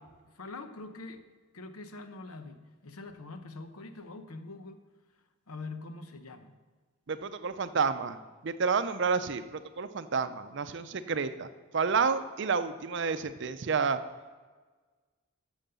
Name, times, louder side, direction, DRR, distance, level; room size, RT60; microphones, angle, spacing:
voice 1, 0.4-1.2 1.5-4.8 5.5-6.5, left 3 dB, 85° left, 8 dB, 0.9 m, -44 dB
voice 2, 7.1-8.2 8.4-11.5 11.7-14.0, right 5 dB, 55° right, 11 dB, 0.5 m, -30 dB
9.1 x 7.2 x 6.9 m, 1.4 s
head